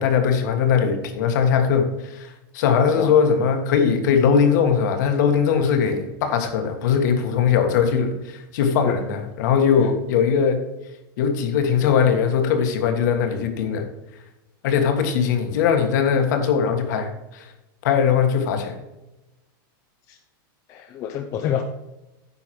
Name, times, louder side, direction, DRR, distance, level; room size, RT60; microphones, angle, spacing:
voice 1, 0.0-2.3 2.5-10.6 11.2-13.9 14.6-17.5 17.8-18.8, left 7 dB, 55° left, 6 dB, 1.6 m, -20 dB
voice 2, 20.7-21.6, left 9 dB, 25° left, 5 dB, 0.6 m, -27 dB
9.6 x 5.8 x 4.7 m, 0.99 s
supercardioid pair, 175°, 12 cm